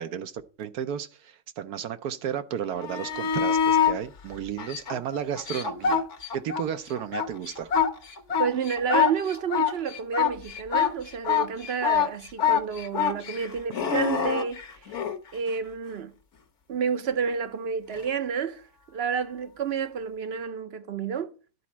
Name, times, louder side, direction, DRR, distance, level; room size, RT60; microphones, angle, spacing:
voice 1, 0.0-6.0 6.3-7.7, right 9 dB, 75° right, 1.2 m, -33 dB
sound 1, 2.7-4.0 4.6-6.6 7.0-15.2 17.9-18.0, left 7 dB, 50° left, 1.2 m, -25 dB
voice 2, 8.4-14.6 15.3-16.1 16.7-18.7 18.9-21.3, right 6 dB, 55° right, 0.8 m, -30 dB
11.5 x 4.2 x 7.2 m
omnidirectional pair, 1.7 m